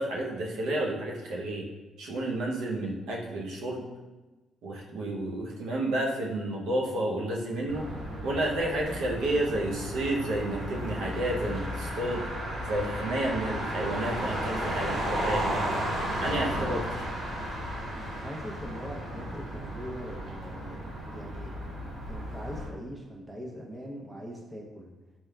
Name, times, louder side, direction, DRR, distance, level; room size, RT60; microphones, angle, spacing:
voice 1, 0.0-1.6 2.0-3.8 4.6-7.9 8.2-12.2 12.7-15.6 16.2-17.0, right 1 dB, 85° right, -2 dB, 0.6 m, -31 dB
Motor vehicle (road), 7.7-22.7, equal, 65° right, 1.2 m, -34 dB
voice 2, 18.2-20.8 21.1-21.5 22.1-24.9, equal, 15° right, -1 dB, 0.7 m, -41 dB
4.3 x 3.5 x 2.3 m, 1.2 s
cardioid pair, 90°, 0 cm